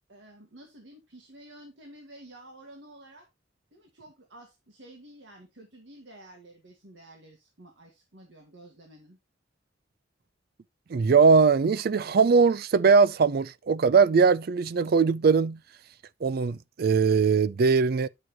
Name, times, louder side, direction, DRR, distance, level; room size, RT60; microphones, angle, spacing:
voice 1, 0.1-3.3 3.7-9.2, right 1 dB, 80° right, 1.7 m, -51 dB
voice 2, 10.9-15.6 16.2-18.1, right 5 dB, 55° right, 0.4 m, -21 dB
9.9 x 6.0 x 2.9 m
head